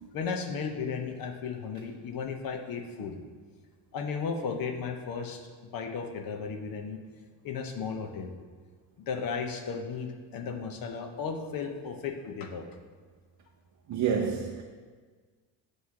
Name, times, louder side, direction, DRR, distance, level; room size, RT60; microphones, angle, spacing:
voice 1, 0.1-3.2 3.9-5.4 5.7-7.0 7.4-8.3 9.1-12.6, left 5 dB, 50° left, 5 dB, 0.8 m, -35 dB
voice 2, 13.9-14.6, right 7 dB, 40° right, 1 dB, 0.5 m, -28 dB
7.9 x 3.2 x 5.7 m, 1.5 s
cardioid pair, 155°, 45 cm